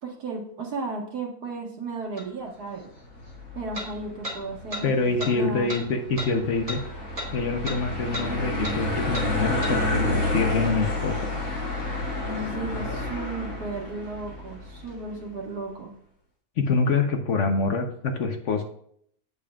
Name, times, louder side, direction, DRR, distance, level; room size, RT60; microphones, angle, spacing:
voice 1, 0.0-2.9 3.5-5.7 12.2-15.9, right 3 dB, 85° right, 0 dB, 2.1 m, -34 dB
sound 1, 2.2-2.3 3.7-3.9 4.2-4.4 4.7-4.8 5.2-5.3 5.7-5.8 6.2-6.3 6.7-6.8 7.2-7.3 7.6-7.8 8.1-8.3 8.6-8.8 9.1-9.3 9.6-9.8, equal, 25° right, 1.5 m, -33 dB
sound 2, 3.1-15.3, left 2 dB, 80° left, 4.3 m, -30 dB
voice 2, 4.8-6.8 7.3-11.3 16.6-18.6, left 4 dB, 55° left, 5 dB, 1.2 m, -26 dB
8.5 x 8.5 x 2.4 m, 0.66 s
omnidirectional pair, 1.6 m